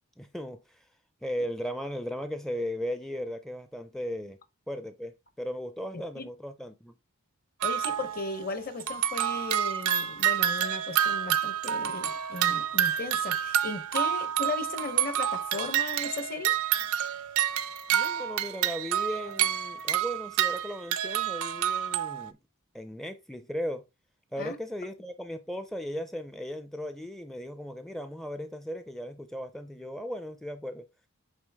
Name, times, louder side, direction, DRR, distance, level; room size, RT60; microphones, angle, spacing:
voice 1, 0.2-0.9 1.2-4.4 4.7-6.9 17.9-22.4 22.7-23.8 24.3-30.9, equal, ahead, 0.4 m, -37 dB
voice 2, 7.6-16.5 24.4-24.6, left 3 dB, 45° left, 0.9 m, -36 dB
sound 1, 7.6-8.4 8.8-22.3, right 10 dB, 80° right, 0.5 m, -28 dB
8.2 x 3.5 x 3.5 m
head